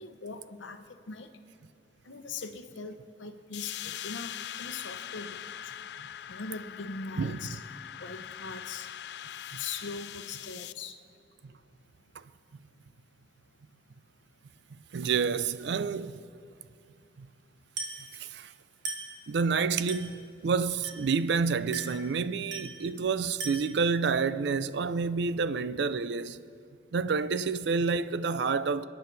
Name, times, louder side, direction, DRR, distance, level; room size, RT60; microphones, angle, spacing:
voice 1, 0.0-1.4 2.0-5.9 6.3-7.6 8.0-9.0 9.2-11.1 11.4-11.5 12.7-12.8, left 4 dB, 85° left, 0.8 m, -41 dB
sound 1, 3.5-10.7, left 11 dB, 65° left, 0.3 m, -42 dB
voice 2, 14.9-16.2 17.2-17.3 18.2-18.5 19.3-26.4 26.9-28.8, right 5 dB, 70° right, 0.4 m, -29 dB
Glass, 17.8-18.1 18.8-19.2 19.9-20.2 20.8-21.2 21.7-22.1 22.5-22.8 23.4-23.8, right 3 dB, 90° right, 2.9 m, -38 dB
28.5 x 9.7 x 3.3 m
head